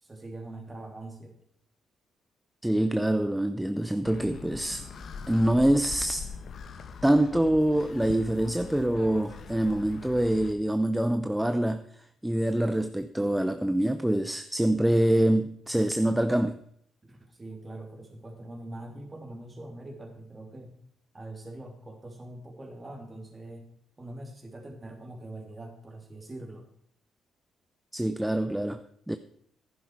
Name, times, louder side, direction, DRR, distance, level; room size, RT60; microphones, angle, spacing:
voice 1, 0.0-1.3 17.0-20.8 21.1-23.7 24.0-26.7, right 2 dB, 25° right, 2.9 m, -43 dB
voice 2, 2.6-4.9 5.3-6.3 7.0-11.8 12.2-16.6 27.9-29.2, right 1 dB, 5° right, 0.6 m, -25 dB
sound 1, 4.0-10.5, left 5 dB, 55° left, 1.2 m, -42 dB
11.5 x 10.5 x 4.7 m
cardioid pair, 90°, 0 cm